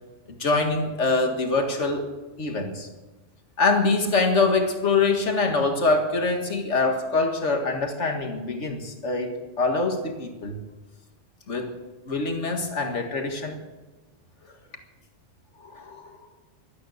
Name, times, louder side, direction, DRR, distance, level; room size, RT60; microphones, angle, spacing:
voice 1, 0.3-2.1 2.4-2.9 3.6-10.6 11.5-11.7 12.1-13.6 15.6-16.2, left 3 dB, 90° left, 4 dB, 2.1 m, -24 dB
16.0 x 12.5 x 6.5 m, 1.2 s
omnidirectional pair, 1.2 m